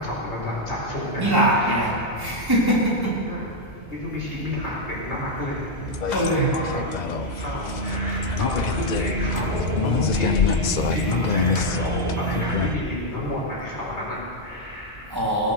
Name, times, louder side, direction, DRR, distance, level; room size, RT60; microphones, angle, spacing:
voice 1, 0.0-1.9 3.3-3.5 3.9-5.6 5.9-6.8 7.2-10.5 10.9-15.2, left 1 dB, 80° left, -6 dB, 4.7 m, -30 dB
voice 2, 1.1-1.9 2.2-3.1 6.1-6.5 15.1-15.5, right 1 dB, 20° right, -6 dB, 3.6 m, -21 dB
sound 1, 4.0-12.8, right 2 dB, 70° right, 1.7 m, -30 dB
sound 2, 5.9-12.7, left 7 dB, 55° left, 0.5 m, -27 dB
18.5 x 9.2 x 6.7 m, 2.3 s
omnidirectional pair, 1.1 m